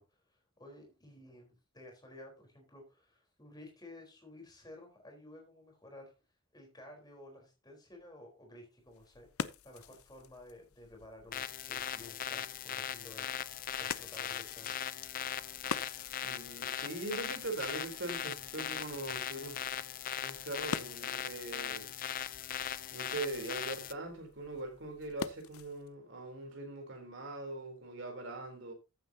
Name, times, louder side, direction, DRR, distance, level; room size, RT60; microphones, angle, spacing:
voice 1, 0.0-6.1 6.5-13.5 13.8-14.7, left 1 dB, 20° left, 4.2 m, -54 dB
sound 1, 8.8-25.9, left 6 dB, 75° left, 0.7 m, -47 dB
sound 2, 11.3-23.9, left 9 dB, 40° left, 0.5 m, -39 dB
voice 2, 16.2-19.6 20.2-21.9 22.9-28.7, right 2 dB, 55° right, 3.7 m, -41 dB
14.5 x 9.0 x 2.9 m
head